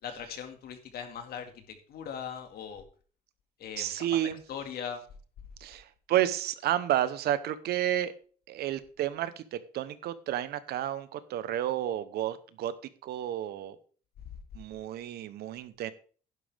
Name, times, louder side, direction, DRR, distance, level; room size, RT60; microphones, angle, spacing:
voice 1, 0.0-2.8 3.6-3.9 4.5-5.0, left 7 dB, 65° left, 6 dB, 2.2 m, -40 dB
voice 2, 3.8-4.4 5.6-8.1 8.5-12.7 13.0-13.8 14.5-15.9, right 12 dB, 70° right, 14 dB, 1.0 m, -31 dB
11.0 x 10.5 x 3.5 m, 0.42 s
cardioid pair, 110°, 17 cm